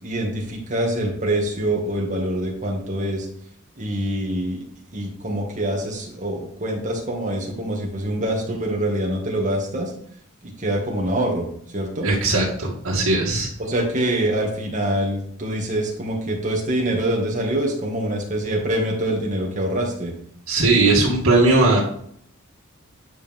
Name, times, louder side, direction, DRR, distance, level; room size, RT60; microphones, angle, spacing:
voice 1, 0.0-3.3 3.8-4.6 4.9-9.9 10.4-11.5 11.7-12.1 13.6-20.1, right 1 dB, 35° right, -1 dB, 2.0 m, -25 dB
voice 2, 12.0-13.5 20.5-21.8, right 2 dB, 75° right, -7 dB, 2.3 m, -18 dB
9.9 x 5.0 x 3.6 m, 0.63 s
head